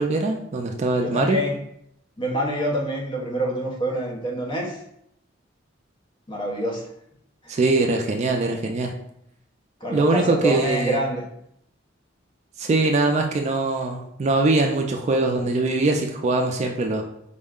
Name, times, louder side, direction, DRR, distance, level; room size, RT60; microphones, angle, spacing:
voice 1, 0.0-1.4 7.5-8.9 9.9-11.0 12.6-17.0, right 2 dB, 35° right, 3 dB, 0.3 m, -22 dB
voice 2, 1.0-1.6 2.2-4.8 6.3-6.9 7.4-7.6 9.8-11.2, right 1 dB, 25° left, -1 dB, 0.7 m, -26 dB
4.3 x 2.1 x 3.6 m, 0.74 s
head